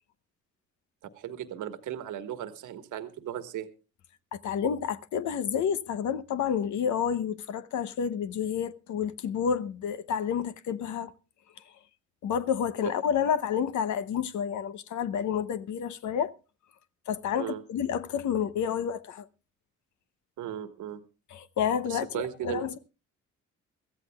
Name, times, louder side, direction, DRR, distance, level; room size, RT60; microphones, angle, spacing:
voice 1, 1.0-3.7 17.4-17.6 20.4-21.0 21.9-22.8, right 11 dB, 80° right, 1.5 m, -36 dB
voice 2, 4.3-11.1 12.2-16.4 17.1-19.3 21.3-22.8, left 8 dB, 70° left, 0.8 m, -29 dB
24.0 x 14.5 x 2.3 m
cardioid pair, 90°, 30 cm